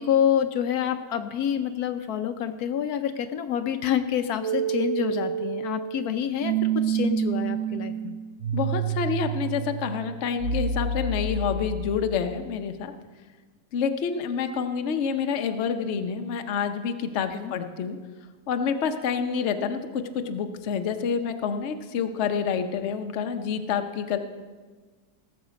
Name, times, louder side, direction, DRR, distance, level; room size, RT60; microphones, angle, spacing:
voice 1, 0.0-8.2 17.3-17.5, left 9 dB, 75° left, 8 dB, 1.1 m, -27 dB
sound 1, 4.4-12.3, right 6 dB, 60° right, 1.0 m, -29 dB
voice 2, 8.5-12.9 13.7-18.0 18.5-24.2, left 6 dB, 55° left, 6 dB, 0.9 m, -28 dB
17.5 x 7.3 x 5.1 m, 1.4 s
omnidirectional pair, 1.7 m